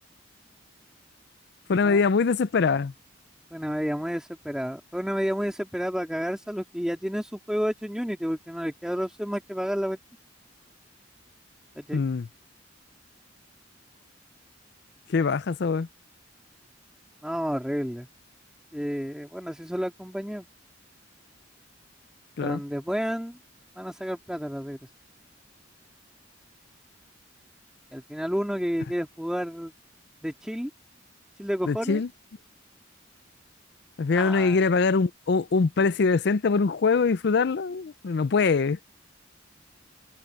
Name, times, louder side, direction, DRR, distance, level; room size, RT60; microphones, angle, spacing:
voice 1, 1.7-2.9 11.9-12.3 15.1-15.9 22.4-22.6 31.7-32.1 34.0-38.8, left 4 dB, 60° left, 0.5 m, -23 dB
voice 2, 3.5-10.0 11.8-12.0 17.2-18.1 18.7-20.5 22.4-23.4 23.8-24.8 27.9-29.7 30.2-30.7 31.4-32.0 34.1-34.6, equal, 5° right, 2.7 m, -30 dB
head